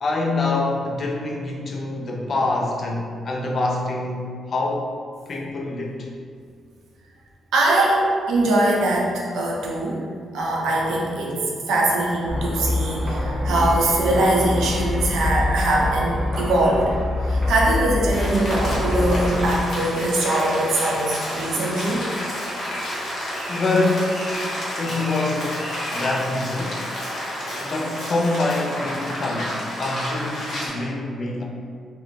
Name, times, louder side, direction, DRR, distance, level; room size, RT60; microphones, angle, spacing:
voice 1, 0.0-4.9 5.3-6.1 23.5-24.2 24.8-26.9 27.6-31.4, left 2 dB, 50° left, -1 dB, 0.3 m, -25 dB
voice 2, 7.5-10.0 10.3-11.4 11.7-16.9 17.2-22.1, right 1 dB, 90° right, -3 dB, 0.5 m, -22 dB
sound 1, 12.3-19.6, left 1 dB, 30° right, 0.6 m, -25 dB
Rain, 18.1-30.7, equal, 65° left, 0.9 m, -30 dB
2.5 x 2.0 x 3.0 m, 2.1 s
cardioid pair, 110°, 0 cm